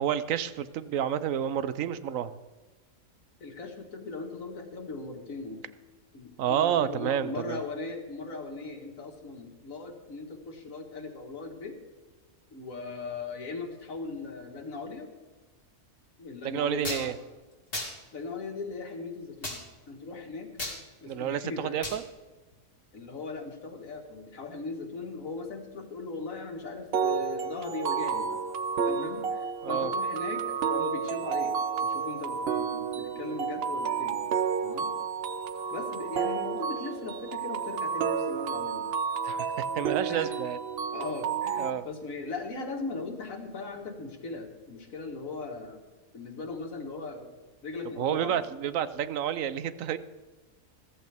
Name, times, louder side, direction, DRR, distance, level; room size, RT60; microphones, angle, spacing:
voice 1, 0.0-2.4 6.4-7.6 16.4-17.1 21.1-22.0 29.6-29.9 39.2-39.5 39.7-40.6 41.6-41.8 48.0-50.0, right 9 dB, 80° right, 14 dB, 1.1 m, -29 dB
voice 2, 3.4-5.6 6.1-11.8 12.5-15.1 16.2-17.2 18.1-19.6 19.9-20.5 21.0-21.8 22.9-28.4 28.9-34.2 34.6-34.9 35.7-38.9 40.1-40.3 40.9-45.8 46.1-47.3 47.6-48.4, left 3 dB, 85° left, 2 dB, 2.1 m, -39 dB
sound 1, 16.8-17.0 17.7-17.9 19.4-19.6 20.6-20.8 21.8-22.0, left 2 dB, 45° left, 2.7 m, -33 dB
sound 2, 26.9-41.7, right 6 dB, 60° right, 0.7 m, -31 dB
14.5 x 14.0 x 3.5 m, 1.3 s
omnidirectional pair, 1.4 m